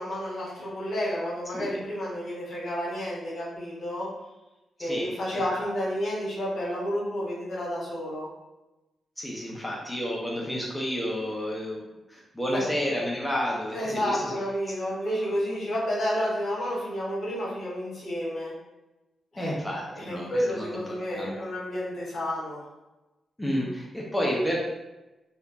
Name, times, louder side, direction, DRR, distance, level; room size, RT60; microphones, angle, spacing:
voice 1, 0.0-4.1 4.8-8.3 12.5-12.6 13.7-18.5 19.3-19.6 19.9-22.6, equal, 65° left, -6 dB, 1.4 m, -30 dB
voice 2, 4.8-5.7 9.2-14.4 14.7-14.8 19.4-20.8 21.1-21.3 23.4-24.5, equal, 10° left, -3 dB, 0.8 m, -31 dB
3.4 x 2.8 x 2.5 m, 1.0 s
supercardioid pair, 45°, 0 cm